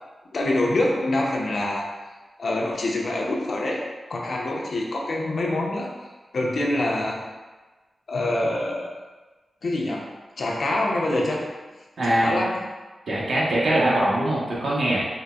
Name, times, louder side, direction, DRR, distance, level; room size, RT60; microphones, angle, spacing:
voice 1, 0.3-1.8 2.4-3.8 4.1-5.9 6.3-7.2 8.1-8.9 9.6-10.0 10.4-11.4 12.0-12.6, left 1 dB, 65° left, -2 dB, 0.5 m, -25 dB
voice 2, 12.0-12.3 13.1-15.0, right 1 dB, 75° right, -6 dB, 0.9 m, -22 dB
3.8 x 2.4 x 2.3 m, 1.2 s
wide cardioid pair, 80°, 0 cm